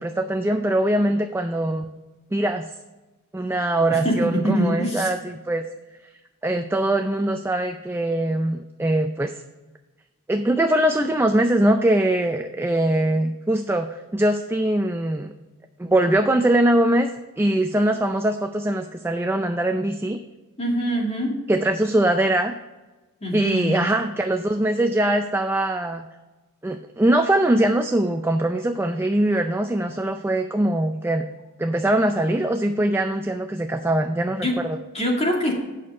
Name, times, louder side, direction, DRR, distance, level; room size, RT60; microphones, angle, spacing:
voice 1, 0.0-1.9 2.3-2.7 3.3-5.2 5.5-5.7 6.4-9.4 10.3-15.3 15.8-17.1 17.4-20.2 21.5-22.5 23.3-26.1 26.6-31.3 31.6-34.8, right 1 dB, 10° right, 6 dB, 0.4 m, -22 dB
voice 2, 3.9-5.1 20.6-21.4 23.2-23.9 34.4-34.6 34.9-35.5, equal, 30° left, -1 dB, 2.2 m, -24 dB
8.5 x 6.4 x 5.4 m, 1.2 s
head